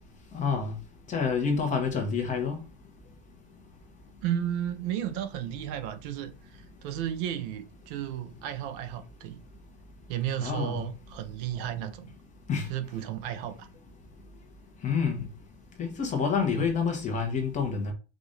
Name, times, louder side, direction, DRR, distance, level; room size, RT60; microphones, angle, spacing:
voice 1, 0.3-0.8 1.1-2.6 10.4-10.9 12.5-12.7 14.8-15.2 15.8-17.9, left 5 dB, 20° left, 1.0 m, -28 dB
voice 2, 4.2-9.4 10.1-12.1 12.7-13.7, right 10 dB, 55° right, 0.7 m, -33 dB
4.9 x 2.6 x 4.0 m
supercardioid pair, 150°, 33 cm